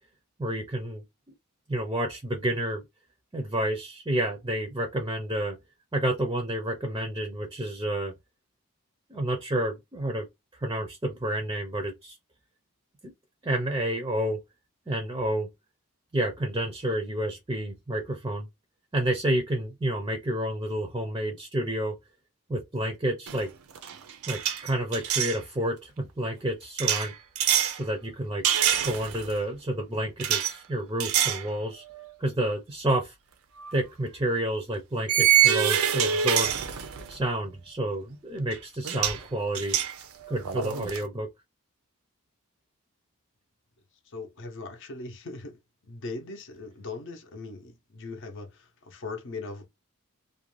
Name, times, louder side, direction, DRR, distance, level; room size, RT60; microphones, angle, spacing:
voice 1, 0.4-1.0 1.7-2.8 3.3-5.6 5.9-8.1 9.1-10.3 10.6-12.2 13.0-13.1 13.4-14.4 14.9-15.5 16.1-18.5 18.9-22.0 22.5-23.5 24.3-27.1 27.7-28.4 28.8-31.8 32.2-33.1 33.7-36.5 37.1-39.8 40.3-41.3, right 1 dB, 15° right, 0.5 m, -29 dB
sound 1, 23.3-23.5 23.7-25.4 26.8-27.8 28.4-29.3 30.2-30.5 31.0-31.5 31.9-32.1 33.6-33.7 35.1-37.2 38.5-38.6 38.8-39.2 39.5-41.0, right 9 dB, 70° right, 0.5 m, -25 dB
voice 2, 44.1-45.6 45.9-49.7, left 3 dB, 55° left, 0.6 m, -39 dB
2.4 x 2.1 x 3.0 m
head